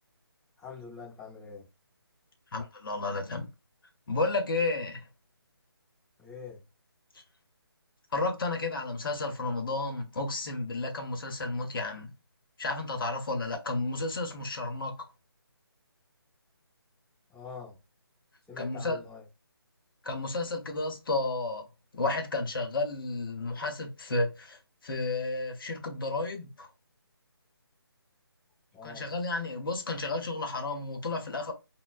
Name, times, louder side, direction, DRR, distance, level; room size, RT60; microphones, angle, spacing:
voice 1, 0.6-1.7 6.2-6.6 17.3-17.8 18.5-19.2 28.7-29.1, left 5 dB, ahead, 0.6 m, -44 dB
voice 2, 2.5-3.5 4.1-5.0 8.1-12.1 12.6-15.1 18.6-19.0 20.0-21.7 21.9-24.6 24.8-26.7 28.8-31.5, left 2 dB, 60° left, 0.8 m, -32 dB
4.1 x 2.1 x 2.3 m
figure-of-eight pair, 160°, 13 cm